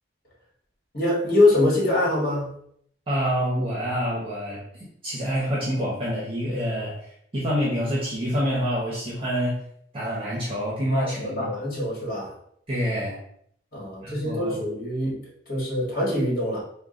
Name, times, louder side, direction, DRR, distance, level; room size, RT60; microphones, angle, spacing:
voice 1, 0.9-2.5 10.9-12.3 13.7-16.6, left 2 dB, 50° left, -4 dB, 1.5 m, -24 dB
voice 2, 3.1-9.6 9.9-11.5 12.7-13.2 14.0-14.6, equal, 30° right, -7 dB, 0.8 m, -27 dB
3.7 x 2.2 x 3.7 m, 0.68 s
head